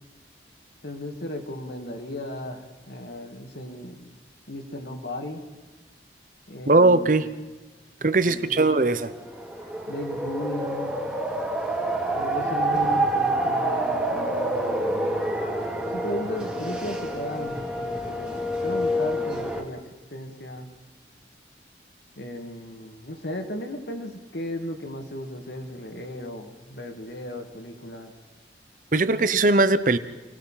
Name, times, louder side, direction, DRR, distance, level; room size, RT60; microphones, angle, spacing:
voice 1, 0.8-4.1 4.5-5.4 6.5-7.3 8.2-8.7 9.9-11.1 12.2-19.8 20.1-20.7 22.2-28.1, left 1 dB, 65° left, 2.3 m, -36 dB
voice 2, 6.7-7.3 8.0-9.1 28.9-30.0, right 2 dB, 45° right, 0.9 m, -19 dB
sound 1, 9.0-19.6, right 1 dB, 5° right, 2.2 m, -27 dB
28.0 x 19.0 x 5.8 m
head